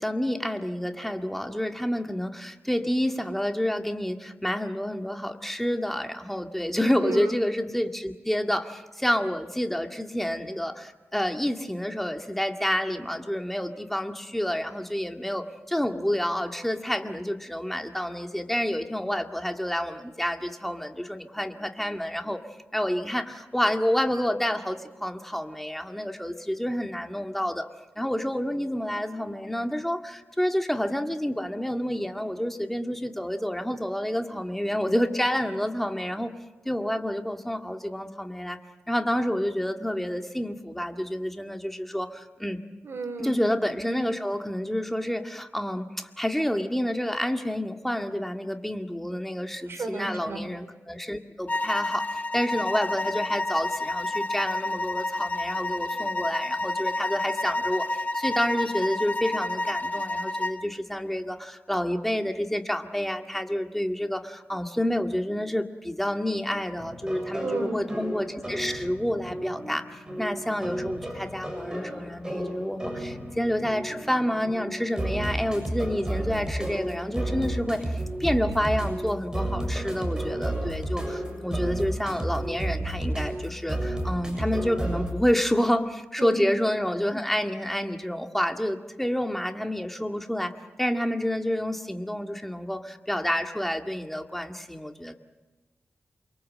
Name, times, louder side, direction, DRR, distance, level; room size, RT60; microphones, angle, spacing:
voice 1, 0.0-22.4 22.7-27.7 28.0-36.3 36.6-38.6 38.9-42.6 43.2-90.5 90.8-95.1, equal, 5° left, 5 dB, 2.0 m, -29 dB
voice 2, 6.8-7.3 42.8-43.3 49.7-50.4 67.4-67.9 86.2-86.4, right 3 dB, 60° right, 5 dB, 5.1 m, -32 dB
sound 1, 51.5-60.6, left 2 dB, 35° left, 1.3 m, -29 dB
sound 2, 66.8-85.1, right 1 dB, 15° right, 7.0 m, -32 dB
29.0 x 23.5 x 7.7 m, 1.1 s
wide cardioid pair, 100°, 5 cm